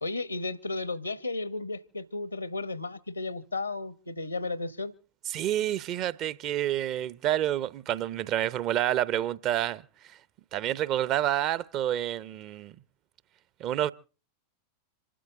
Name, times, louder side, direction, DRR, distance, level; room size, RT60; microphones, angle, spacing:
voice 1, 0.0-4.9, left 3 dB, 80° left, 1.1 m, -34 dB
voice 2, 5.3-9.8 10.5-12.8 13.6-13.9, right 12 dB, 35° right, 0.7 m, -28 dB
26.5 x 12.5 x 3.7 m
figure-of-eight pair, 90°, 0 cm